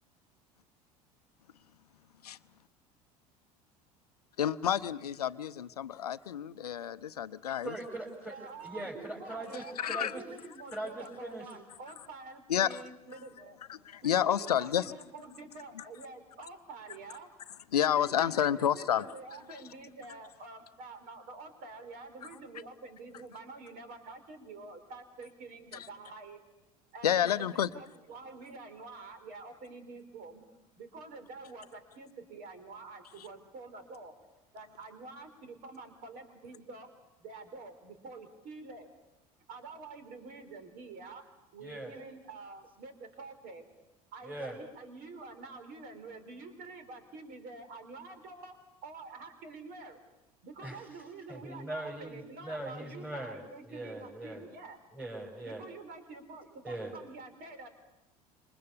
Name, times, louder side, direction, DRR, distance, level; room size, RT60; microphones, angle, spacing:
voice 1, 4.4-7.7 9.8-10.1 12.5-12.8 13.7-14.9 17.7-19.0 25.7-25.9 27.0-27.7, left 9 dB, 75° left, 15 dB, 0.8 m, -29 dB
voice 2, 7.6-10.2 10.7-11.4 41.6-41.9 44.2-44.6 50.6-50.8 51.3-54.4 54.9-55.6 56.6-56.9, right 1 dB, 5° right, -4 dB, 5.5 m, -41 dB
voice 3, 8.2-13.6 14.0-17.3 17.8-26.4 26.9-30.4 30.8-34.1 34.5-36.9 37.2-38.9 39.5-41.2 41.5-43.6 44.1-48.6 48.8-50.0 50.4-54.8 55.4-57.7, right 3 dB, 50° right, 9 dB, 4.1 m, -47 dB
27.0 x 24.0 x 7.0 m, 0.97 s
figure-of-eight pair, 70°, 20 cm